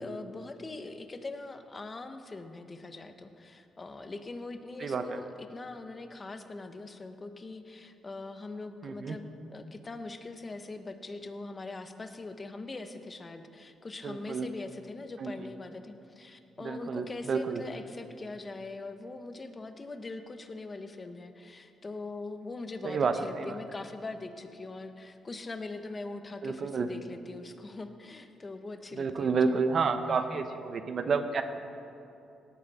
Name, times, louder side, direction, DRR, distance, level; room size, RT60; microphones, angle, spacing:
voice 1, 0.0-29.6, left 3 dB, 30° left, 8 dB, 0.9 m, -42 dB
voice 2, 4.8-5.2 8.8-9.2 14.0-14.5 15.2-15.5 16.6-17.6 22.8-23.6 26.4-26.9 29.0-31.4, right 5 dB, 50° right, 9 dB, 0.8 m, -30 dB
18.0 x 8.8 x 4.2 m, 2.7 s
cardioid pair, 90°, 0 cm